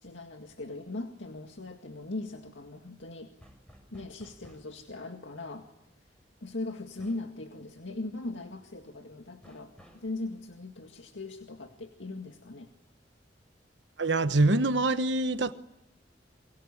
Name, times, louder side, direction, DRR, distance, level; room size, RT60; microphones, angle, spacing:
voice 1, 0.0-3.3 3.9-5.7 6.4-12.7, left 2 dB, 90° left, 2.1 m, -39 dB
sound 1, 3.4-4.8 7.0-7.3 9.4-10.1, equal, 5° left, 6.8 m, -55 dB
voice 2, 14.0-15.5, right 2 dB, 70° right, 1.1 m, -25 dB
29.0 x 23.5 x 8.6 m
head